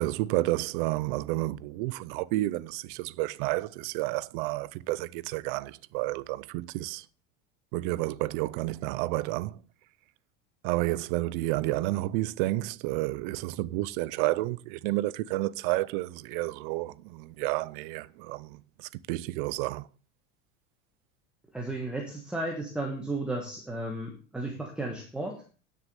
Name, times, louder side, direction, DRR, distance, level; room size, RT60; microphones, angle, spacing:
voice 1, 0.0-7.0 7.7-9.6 10.6-19.9, right 18 dB, 50° right, 0.5 m, -30 dB
voice 2, 21.5-25.4, right 2 dB, 5° right, 1.3 m, -34 dB
10.0 x 6.6 x 6.7 m
supercardioid pair, 175°, 34 cm